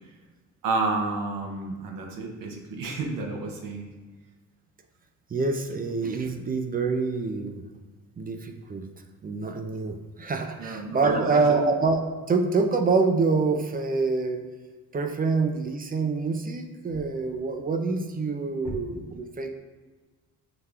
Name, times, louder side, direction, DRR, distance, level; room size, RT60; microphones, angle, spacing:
voice 1, 0.6-3.9 10.6-11.7 18.6-18.7, right 3 dB, 80° right, 1 dB, 0.8 m, -31 dB
voice 2, 5.3-7.6 8.2-8.9 9.2-14.4 14.9-19.5, right 4 dB, 25° right, 5 dB, 0.4 m, -26 dB
5.8 x 2.3 x 3.4 m, 1.3 s
cardioid pair, 90°, 33 cm